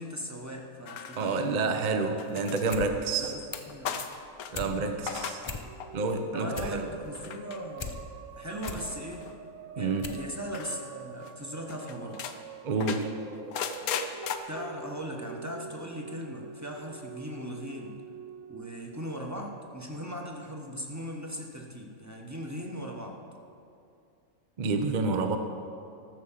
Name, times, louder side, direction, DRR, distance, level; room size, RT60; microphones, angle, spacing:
voice 1, 0.0-1.6 3.2-3.4 3.7-4.0 6.3-7.9 8.4-9.3 9.7-12.2 14.5-18.0 18.5-23.2, equal, 15° right, 0 dB, 1.0 m, -38 dB
sound 1, 0.9-1.8 2.2-4.5 4.9-5.5 5.8-6.2 7.1-7.6 8.6-9.3 10.5-10.9 11.3-11.4 11.7-12.4 12.8-14.4, left 7 dB, 80° left, 1.2 m, -37 dB
voice 2, 1.2-3.3 4.5-5.4 5.9-6.8 9.8-10.2 12.6-13.1 24.6-25.4, right 3 dB, 40° right, 6 dB, 0.8 m, -29 dB
sound 2, 2.7-2.9 3.2-3.8 4.2-4.7 5.1-5.2 5.4-6.0 6.3-7.9 8.3-8.9 9.4-9.5 10.0-10.3 10.5-10.6, left 4 dB, 35° left, 0.4 m, -39 dB
sound 3, 5.5-19.9, right 6 dB, 70° right, 1.1 m, -46 dB
13.5 x 6.3 x 7.3 m, 2.5 s
omnidirectional pair, 1.5 m